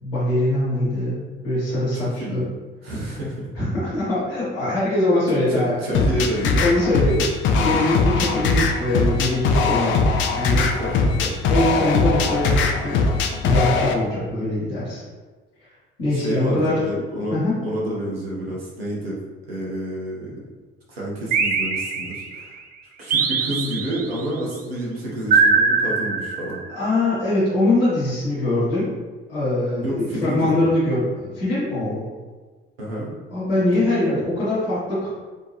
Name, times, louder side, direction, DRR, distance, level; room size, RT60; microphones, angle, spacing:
voice 1, 0.0-2.5 3.5-5.7 6.1-9.9 10.3-10.7 11.5-13.0 13.4-15.0 16.0-16.8 17.3-17.6 26.7-28.9 29.3-32.1 33.3-35.1, left 1 dB, 80° left, -13 dB, 1.2 m, -22 dB
voice 2, 1.9-2.5 2.8-3.5 5.3-6.6 10.6-11.3 16.1-19.2 19.5-20.4 20.9-22.6 23.0-26.6 29.8-30.7 32.8-33.1, right 1 dB, 80° right, -5 dB, 0.8 m, -29 dB
sound 1, 5.9-13.9, left 4 dB, 40° left, 0.4 m, -20 dB
sound 2, 21.3-22.4 23.1-24.2 25.3-26.8, right 4 dB, 30° right, 0.4 m, -21 dB
3.3 x 2.7 x 3.0 m, 1.4 s
figure-of-eight pair, 50°, 29 cm